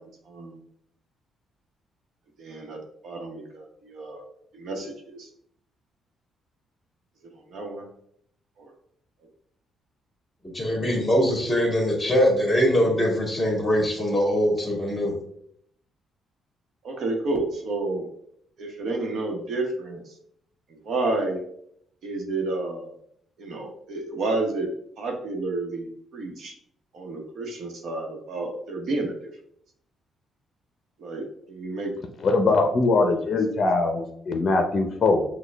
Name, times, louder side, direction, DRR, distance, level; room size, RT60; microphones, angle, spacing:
voice 1, 2.4-2.8 3.0-4.2 4.5-5.3 7.5-7.9 8.6-8.7 16.8-18.1 18.6-20.0 20.8-21.4 22.0-22.9 23.4-24.7 25.0-25.9 26.1-26.5 26.9-29.3 31.0-31.9 32.4-32.6 33.1-33.2, right 2 dB, 70° right, 2 dB, 0.9 m, -30 dB
voice 2, 10.4-15.2, equal, 15° left, 0 dB, 1.7 m, -22 dB
voice 3, 32.2-35.3, left 3 dB, 45° left, 4 dB, 0.6 m, -22 dB
6.3 x 2.2 x 3.4 m, 0.69 s
cardioid pair, 90°, 0 cm